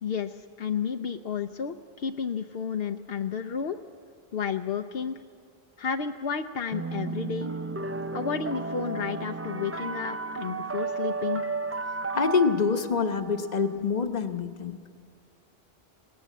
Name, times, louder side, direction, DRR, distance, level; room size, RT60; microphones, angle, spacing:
voice 1, 0.0-3.9 4.3-5.2 5.8-7.5 8.1-11.4, left 6 dB, 70° left, 6 dB, 0.9 m, -32 dB
sound 1, 6.7-13.7, right 4 dB, 20° right, 0.4 m, -33 dB
voice 2, 12.1-14.8, left 5 dB, 45° left, 7 dB, 1.1 m, -26 dB
19.5 x 18.5 x 8.4 m, 2.3 s
omnidirectional pair, 1.0 m